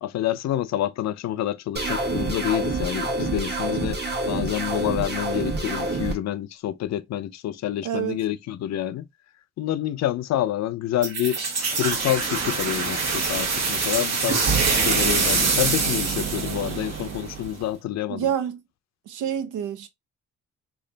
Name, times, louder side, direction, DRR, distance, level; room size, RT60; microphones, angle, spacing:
voice 1, 0.0-4.0 4.3-9.0 9.6-11.4 11.7-18.3, left 12 dB, 60° left, 0.5 m, -28 dB
sound 1, 1.8-6.1, right 2 dB, 35° right, 1.5 m, -27 dB
voice 2, 7.8-8.2 18.1-18.6 19.1-19.9, right 9 dB, 90° right, 0.7 m, -27 dB
sound 2, 11.0-17.6, right 4 dB, 60° right, 1.4 m, -24 dB
3.3 x 2.4 x 3.8 m
cardioid pair, 90°, 30 cm